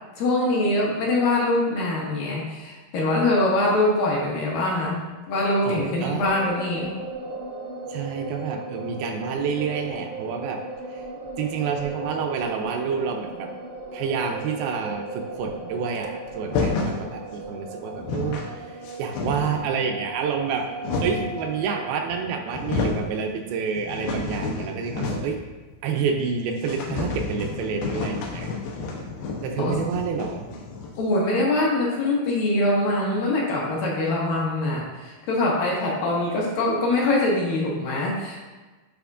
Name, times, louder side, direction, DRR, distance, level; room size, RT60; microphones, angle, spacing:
voice 1, 0.2-5.0 5.3-6.9 29.6-29.8 31.0-38.4, left 2 dB, 70° left, -3 dB, 2.5 m, -23 dB
voice 2, 5.7-6.2 7.9-10.6 10.9-11.1 11.4-13.5 13.9-20.7 21.0-25.4 25.8-28.5 29.4-30.5, right 6 dB, 80° right, 3 dB, 2.3 m, -28 dB
sound 1, 6.2-22.8, right 2 dB, 55° right, 0.8 m, -37 dB
sound 2, 16.5-17.0 17.7-17.8 17.9-18.5 18.8-19.7 20.4-21.3 22.1-22.2 22.5-23.1 23.5-25.4 25.7-25.8 26.1-26.2 26.6-31.1, left 4 dB, 90° left, 2.7 m, -30 dB
10.5 x 4.2 x 2.4 m, 1.2 s
omnidirectional pair, 4.4 m